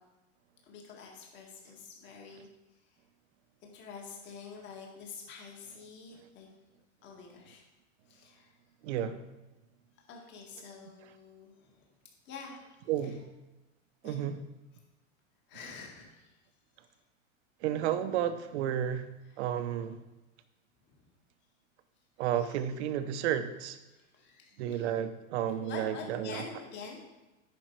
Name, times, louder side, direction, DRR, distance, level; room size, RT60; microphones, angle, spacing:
voice 1, 0.7-2.5 3.6-6.5 7.0-7.6 8.1-8.5 10.1-11.9 12.3-13.1 14.0-14.2 15.5-16.4 16.8-16.9 19.3-19.4 20.9-21.1 22.4-22.6 23.9-24.9 25.6-27.0, left 5 dB, 25° left, -1 dB, 1.8 m, -47 dB
voice 2, 8.8-9.2 12.9-13.3 14.0-14.4 17.6-19.1 19.4-20.0 22.2-23.8 24.6-26.4, right 10 dB, 55° right, 11 dB, 0.8 m, -32 dB
10.5 x 5.2 x 4.6 m, 1.0 s
supercardioid pair, 155°, 40 cm